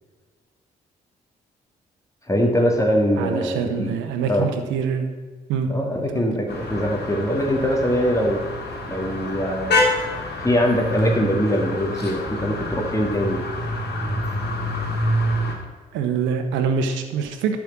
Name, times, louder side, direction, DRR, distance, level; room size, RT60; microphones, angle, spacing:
voice 1, 2.3-3.9 4.3-4.5 5.7-8.4 8.9-10.1 10.4-13.4, equal, 15° left, 0 dB, 2.1 m, -22 dB
voice 2, 3.2-5.1 5.5-5.7 6.1-6.2 15.9-17.6, right 6 dB, 85° right, 6 dB, 1.0 m, -24 dB
sound 1, 6.5-15.5, left 1 dB, 60° left, 2.8 m, -26 dB
10.5 x 4.9 x 7.4 m, 1.4 s
supercardioid pair, 55°, 19 cm